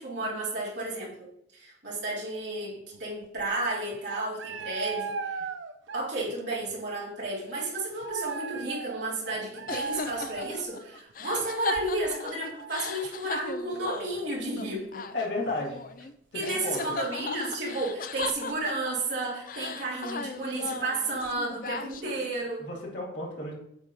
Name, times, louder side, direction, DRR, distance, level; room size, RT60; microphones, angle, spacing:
voice 1, 0.0-5.4 5.9-15.0 16.3-22.7, right 2 dB, 70° right, -6 dB, 3.3 m, -32 dB
sound 1, 2.9-3.0 3.2-3.5 3.9-6.4 6.7-6.8 8.0-14.2 14.6-14.7 15.4-15.6 16.0-16.1 16.4-16.5 18.2-18.5, right 5 dB, 85° right, 0.5 m, -38 dB
sound 2, 9.7-16.1 16.4-19.1 19.5-22.3, left 4 dB, 45° left, 0.5 m, -37 dB
voice 2, 15.1-15.8 16.3-16.8 22.6-23.5, left 2 dB, 75° left, -5 dB, 3.1 m, -33 dB
8.6 x 3.7 x 6.3 m, 0.76 s
head